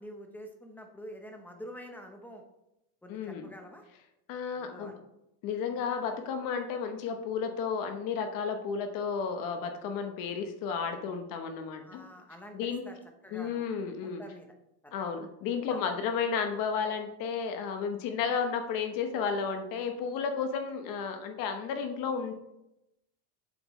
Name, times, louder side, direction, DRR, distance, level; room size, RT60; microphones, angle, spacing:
voice 1, 0.0-2.4 3.0-3.8 4.5-5.0 11.8-13.0 13.2-13.7 14.0-14.5 14.8-15.0 15.7-15.8, equal, 5° left, 4 dB, 0.8 m, -47 dB
voice 2, 3.1-3.5 4.3-4.9 5.4-12.0 12.5-12.8 13.3-14.2 14.9-22.3, left 6 dB, 45° left, 6 dB, 1.0 m, -32 dB
7.6 x 7.5 x 3.1 m, 0.85 s
cardioid pair, 165°, 45 cm